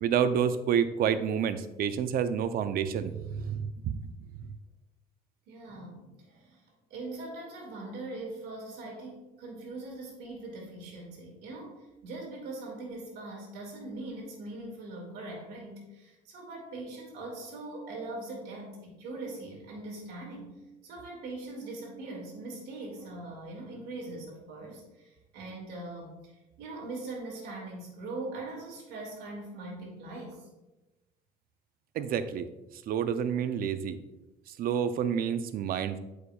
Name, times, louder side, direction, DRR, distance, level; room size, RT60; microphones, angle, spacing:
voice 1, 0.0-3.9 32.0-32.5 32.9-34.0 34.6-36.0, right 8 dB, 60° right, 11 dB, 0.5 m, -29 dB
voice 2, 5.5-20.5 20.8-30.5, right 2 dB, 80° right, -1 dB, 2.1 m, -41 dB
8.1 x 5.0 x 2.3 m, 1.0 s
cardioid pair, 110°, 17 cm